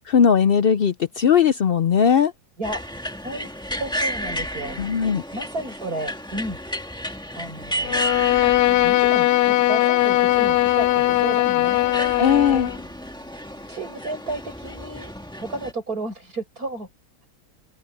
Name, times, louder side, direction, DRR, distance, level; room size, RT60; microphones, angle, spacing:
voice 1, 0.1-2.3 4.8-5.2 12.2-12.7, left 7 dB, 70° left, 0.5 m, -18 dB
sound 1, 2.6-15.7, equal, 5° left, 1.7 m, -32 dB
voice 2, 3.8-4.8 5.3-6.6 7.4-8.0 8.4-8.5 8.8-12.6 13.7-15.1 15.4-16.9, right 2 dB, 65° right, 7.8 m, -33 dB
Bowed string instrument, 7.8-12.8, left 15 dB, 85° left, 1.2 m, -19 dB
open air
omnidirectional pair, 1.7 m